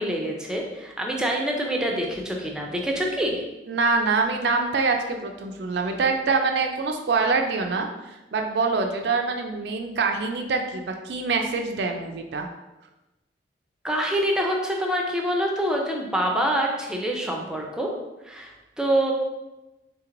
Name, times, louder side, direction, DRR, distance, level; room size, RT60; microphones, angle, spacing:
voice 1, 0.0-3.4 13.8-17.9 18.2-19.1, right 1 dB, 5° right, -1 dB, 0.5 m, -26 dB
voice 2, 3.7-12.5, right 4 dB, 65° right, 4 dB, 0.4 m, -25 dB
3.6 x 2.9 x 3.7 m, 1.0 s
head